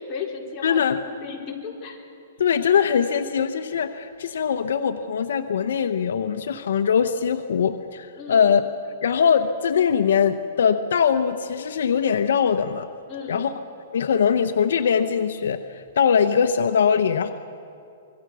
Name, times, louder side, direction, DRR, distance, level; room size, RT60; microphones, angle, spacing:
voice 1, 0.1-2.0 8.2-8.5 13.1-13.5, left 5 dB, 25° left, -3 dB, 4.3 m, -35 dB
voice 2, 0.6-1.0 2.4-8.6 9.0-12.9 13.3-13.5 13.9-17.3, left 7 dB, 75° left, 8 dB, 0.9 m, -21 dB
25.5 x 23.5 x 6.2 m, 2.6 s
hypercardioid pair, 150°, 0 cm